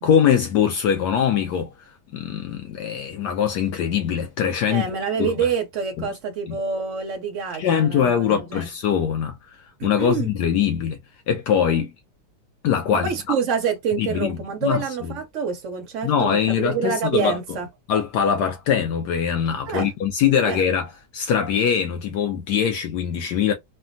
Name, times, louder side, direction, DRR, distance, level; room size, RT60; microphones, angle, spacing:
voice 1, 0.0-4.8 5.2-5.3 6.0-6.1 6.5-6.6 7.6-11.0 11.3-11.9 12.6-13.3 14.0-15.1 16.0-17.4 17.9-20.9 21.1-23.5, left 8 dB, 75° left, 1.1 m, -22 dB
voice 2, 4.7-8.7 9.8-10.3 12.9-17.7 19.7-19.9 20.4-20.6, right 6 dB, 70° right, 0.7 m, -27 dB
3.2 x 2.2 x 2.5 m
omnidirectional pair, 1.9 m